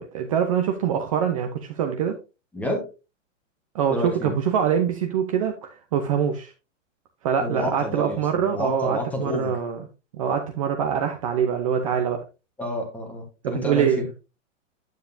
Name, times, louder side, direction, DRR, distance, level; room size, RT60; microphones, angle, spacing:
voice 1, 0.0-2.2 3.7-6.5 7.2-9.8 10.1-12.2 13.4-14.1, right 8 dB, 25° right, 5 dB, 0.6 m, -24 dB
voice 2, 2.5-2.9 3.9-4.3 7.4-9.6 12.6-14.1, equal, 5° left, 3 dB, 1.1 m, -29 dB
9.2 x 7.4 x 2.6 m, 0.29 s
supercardioid pair, 175°, 38 cm